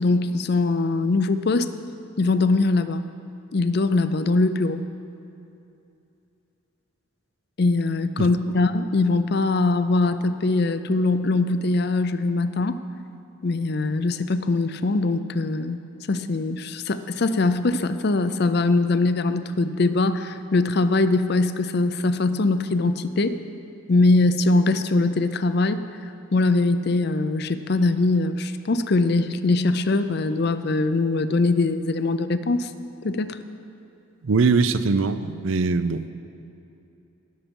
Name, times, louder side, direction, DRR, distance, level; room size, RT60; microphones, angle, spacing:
voice 1, 0.0-1.7 2.2-3.0 3.5-4.8 7.6-12.8 13.4-15.8 16.1-23.4 23.9-25.8 26.3-32.7 33.0-33.4, left 3 dB, 50° left, 11 dB, 0.5 m, -22 dB
voice 2, 34.2-36.1, right 4 dB, 70° right, 13 dB, 0.5 m, -21 dB
19.0 x 7.3 x 5.3 m, 2.7 s
head